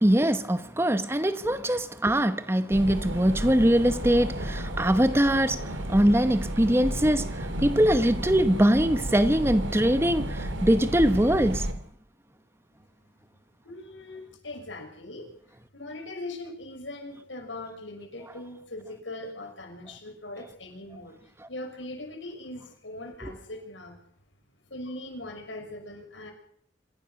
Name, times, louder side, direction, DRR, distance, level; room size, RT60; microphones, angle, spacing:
voice 1, 0.0-11.7 23.2-23.3, equal, 15° right, 0.9 m, -22 dB
sound 1, 2.7-11.7, right 1 dB, 85° right, 2.8 m, -33 dB
voice 2, 13.6-15.2 15.7-21.2 21.5-24.0 24.7-26.3, left 2 dB, 80° left, 6.2 m, -40 dB
26.5 x 16.0 x 6.5 m
head